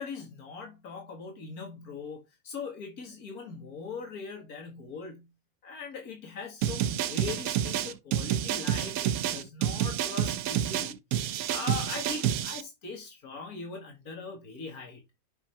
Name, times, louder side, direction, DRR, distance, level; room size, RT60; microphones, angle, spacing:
voice 1, 0.0-5.3 5.6-15.0, left 4 dB, 80° left, 2.3 m, -40 dB
sound 1, 6.6-12.6, right 11 dB, 80° right, 1.1 m, -29 dB
6.3 x 5.8 x 4.5 m
omnidirectional pair, 1.5 m